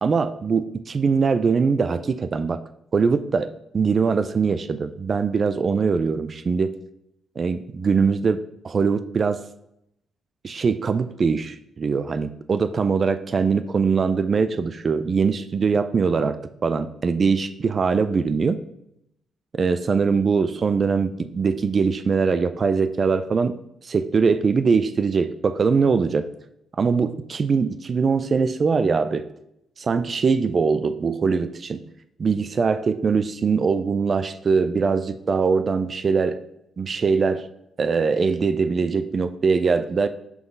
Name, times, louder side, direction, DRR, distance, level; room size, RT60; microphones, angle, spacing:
voice 1, 0.0-2.6 2.9-6.7 7.4-8.4 8.6-9.4 10.4-18.6 19.5-23.5 23.8-26.3 26.8-29.3 29.8-31.9 32.2-36.4 36.8-37.5 37.8-40.1, right 5 dB, 40° right, 12 dB, 0.4 m, -22 dB
5.8 x 3.9 x 5.2 m, 0.79 s
cardioid pair, 90°, 0 cm